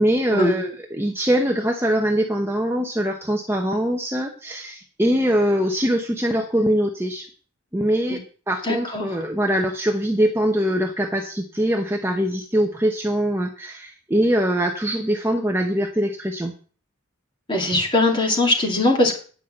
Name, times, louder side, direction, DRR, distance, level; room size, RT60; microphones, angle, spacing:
voice 1, 0.0-7.3 7.7-8.2 8.5-16.5, equal, 10° right, 2 dB, 0.9 m, -22 dB
voice 2, 8.6-9.2 17.5-19.2, left 2 dB, 25° left, 0 dB, 2.4 m, -21 dB
9.6 x 5.6 x 7.6 m, 0.40 s
head